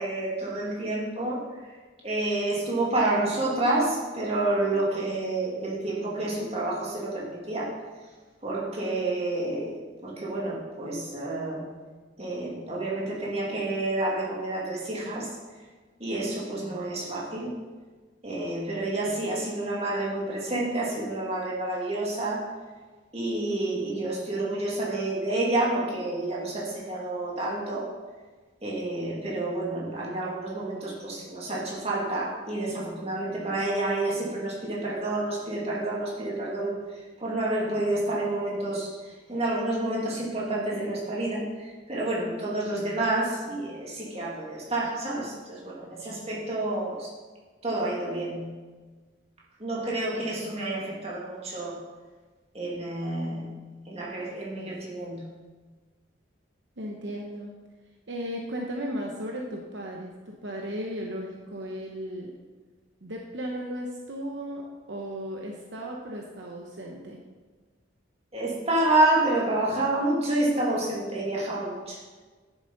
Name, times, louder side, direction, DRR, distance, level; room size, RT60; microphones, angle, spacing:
voice 1, 0.0-1.8 2.0-7.8 8.4-11.7 12.2-15.4 16.0-17.6 18.2-22.5 23.1-27.9 28.6-47.1 47.6-48.5 49.6-51.8 52.5-53.5 53.9-55.2 68.3-72.0, right 2 dB, 30° right, -5 dB, 2.3 m, -29 dB
voice 2, 56.8-57.5 58.1-62.3 63.0-67.2, equal, 65° right, 0 dB, 1.0 m, -35 dB
10.5 x 7.2 x 4.0 m, 1.4 s
head